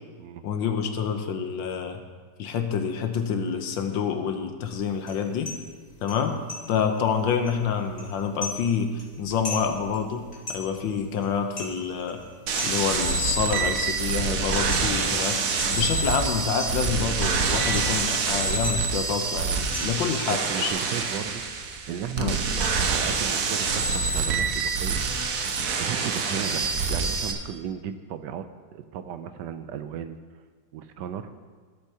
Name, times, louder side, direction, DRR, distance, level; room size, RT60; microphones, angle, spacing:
voice 1, 0.4-2.0 2.4-5.5 6.0-6.4 6.7-10.2 10.5-12.2 12.6-20.7 22.2-22.4, left 6 dB, 85° left, 6 dB, 1.6 m, -27 dB
sound 1, 4.6-20.7, left 3 dB, 35° left, 2.5 m, -42 dB
sound 2, 12.5-27.3, right 4 dB, 55° right, 1.1 m, -26 dB
voice 2, 20.5-21.4 21.9-25.0 25.7-30.2 30.7-31.3, right 8 dB, 75° right, 9 dB, 1.2 m, -35 dB
17.0 x 8.2 x 2.9 m, 1.5 s
omnidirectional pair, 2.0 m